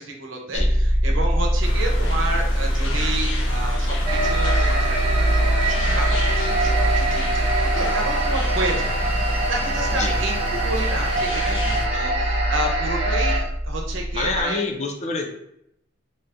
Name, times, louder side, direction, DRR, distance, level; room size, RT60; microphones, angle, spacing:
voice 1, 0.0-7.4 7.7-14.6, right 2 dB, 80° right, 1 dB, 0.9 m, -30 dB
sound 1, 0.5-14.4, equal, ahead, 1.1 m, -24 dB
sound 2, 1.6-11.9, left 2 dB, 80° left, 0.8 m, -33 dB
sound 3, 4.1-13.4, right 2 dB, 30° right, 0.8 m, -23 dB
voice 2, 14.1-15.3, left 3 dB, 35° left, 3 dB, 0.6 m, -27 dB
4.5 x 2.9 x 2.6 m, 0.77 s
head